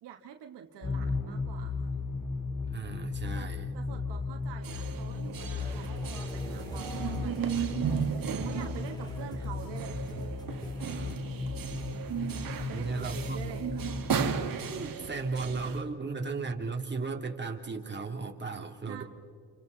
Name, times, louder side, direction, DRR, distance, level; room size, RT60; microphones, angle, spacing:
voice 1, 0.0-2.0 3.2-10.0 12.4-13.7 18.9-19.0, right 9 dB, 80° right, 5 dB, 1.6 m, -47 dB
sound 1, 0.8-14.5, left 4 dB, 50° left, 3.2 m, -36 dB
voice 2, 2.7-3.7 10.9-11.3 12.7-13.6 14.7-19.0, right 4 dB, 25° right, 2 dB, 3.0 m, -36 dB
sound 2, 4.6-15.8, right 8 dB, 55° right, 1.9 m, -35 dB
sound 3, 5.4-11.1, equal, 10° left, 2.2 m, -46 dB
29.0 x 27.5 x 4.0 m, 2.2 s
cardioid pair, 75°, 41 cm